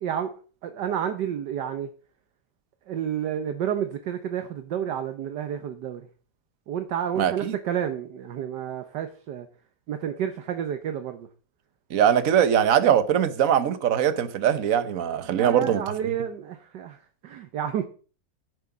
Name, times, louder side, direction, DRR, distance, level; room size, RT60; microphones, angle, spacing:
voice 1, 0.0-0.3 0.6-1.9 2.9-6.1 6.7-9.5 9.9-11.3 15.2-17.8, right 9 dB, 70° right, 1.5 m, -30 dB
voice 2, 7.2-7.6 11.9-15.8, right 9 dB, 55° right, 1.3 m, -21 dB
9.9 x 9.7 x 5.0 m
omnidirectional pair, 2.0 m